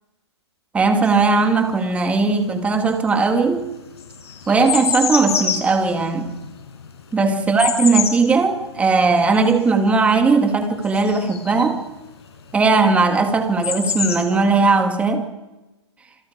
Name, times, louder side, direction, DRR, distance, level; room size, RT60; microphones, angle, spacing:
voice 1, 0.7-3.7 4.5-6.3 7.1-11.8 12.5-15.3, right 4 dB, 10° right, 2.1 m, -18 dB
sound 1, 1.0-2.2 2.5-11.8 12.9-13.0 13.2-14.7, left 7 dB, 65° left, 5.5 m, -27 dB
28.0 x 21.0 x 5.0 m
hypercardioid pair, 145°, 15 cm